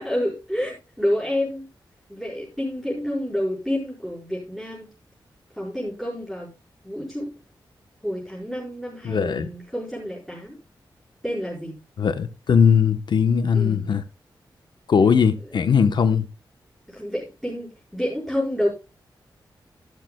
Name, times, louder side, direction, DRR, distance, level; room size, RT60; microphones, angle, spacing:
voice 1, 0.0-1.7 2.1-4.9 5.5-6.5 6.8-7.3 8.0-10.6 11.2-11.8 13.5-13.9 15.5-15.6 16.9-18.7, equal, ahead, 5.2 m, -29 dB
voice 2, 9.0-9.5 12.0-14.0 14.9-16.3, left 6 dB, 70° left, 1.1 m, -19 dB
12.5 x 12.0 x 2.3 m
wide cardioid pair, 120°, 8 cm